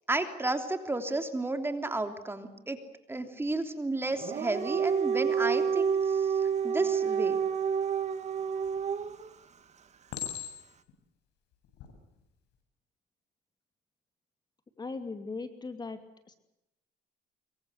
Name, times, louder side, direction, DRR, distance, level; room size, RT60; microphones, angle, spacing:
voice 1, 0.1-2.8 3.1-7.4, right 2 dB, 15° right, 7 dB, 3.2 m, -32 dB
Dog, 4.1-9.3, right 7 dB, 40° right, 2.1 m, -29 dB
Chink clink, 8.6-9.1 10.1-10.9 11.6-11.9, left 10 dB, 80° left, 7.9 m, -39 dB
voice 2, 14.8-16.0 16.3-16.4, left 3 dB, 25° left, 8 dB, 2.7 m, -38 dB
25.5 x 23.5 x 8.1 m, 0.89 s
cardioid pair, 110°, 17 cm